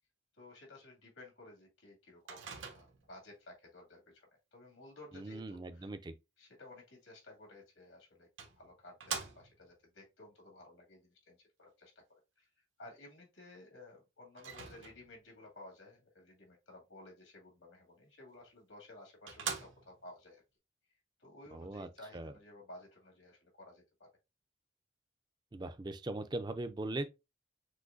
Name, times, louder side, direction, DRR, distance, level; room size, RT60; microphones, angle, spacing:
voice 1, 0.4-5.9 6.4-12.0 12.4-12.5 12.8-20.4 21.2-24.1, left 2 dB, 90° left, 2.2 m, -55 dB
Microwave oven, 2.3-3.2 7.5-7.6 8.4-9.8 14.4-15.3 18.4-18.5 18.9-19.0 19.3-20.1, right 6 dB, 85° right, 1.1 m, -43 dB
voice 2, 5.1-6.1 21.5-22.3 25.5-27.0, right 2 dB, 20° right, 0.4 m, -40 dB
6.2 x 2.6 x 2.5 m
head